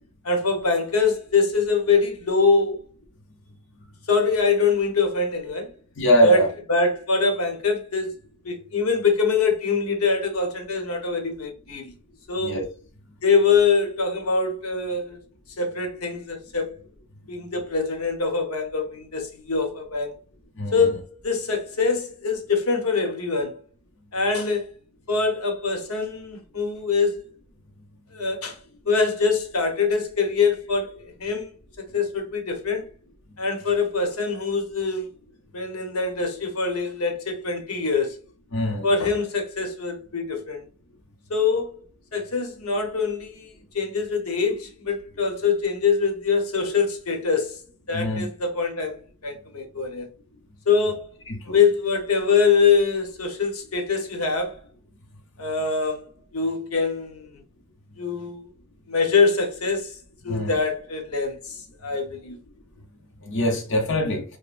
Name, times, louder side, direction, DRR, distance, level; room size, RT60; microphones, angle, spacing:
voice 1, 0.2-2.8 4.1-5.7 6.2-8.1 8.4-11.9 12.3-12.6 13.2-15.2 15.6-16.8 17.3-20.1 20.7-23.6 24.1-24.7 25.1-27.3 28.1-28.6 28.8-31.5 31.8-32.9 33.4-35.1 35.5-38.2 38.8-40.6 41.3-41.8 42.1-43.5 43.7-47.6 47.9-50.1 50.7-51.1 51.4-54.6 55.4-56.1 56.3-57.4 58.0-58.5 58.9-60.0 60.2-62.4, left 4 dB, 90° left, 1.0 m, -24 dB
voice 2, 6.0-6.5 12.4-12.6 20.6-20.9 38.5-38.9 47.9-48.3 51.3-51.6 60.3-60.5 63.2-64.2, equal, 60° left, 0.8 m, -23 dB
5.2 x 2.1 x 2.5 m
head